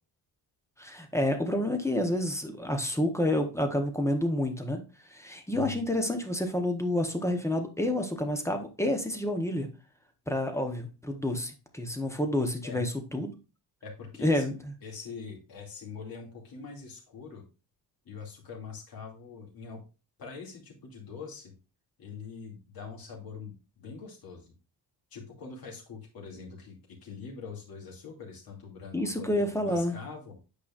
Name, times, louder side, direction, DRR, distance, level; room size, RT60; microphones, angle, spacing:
voice 1, 0.8-9.7 10.3-13.3 14.2-14.7 28.9-30.0, left 1 dB, 5° left, 5 dB, 0.8 m, -29 dB
voice 2, 5.5-5.9 12.6-12.8 13.8-14.4 14.8-17.4 18.0-19.8 20.2-21.5 22.0-24.5 25.1-30.4, left 5 dB, 55° left, 0 dB, 2.4 m, -43 dB
8.7 x 4.9 x 2.4 m, 0.31 s
wide cardioid pair, 160°, 42 cm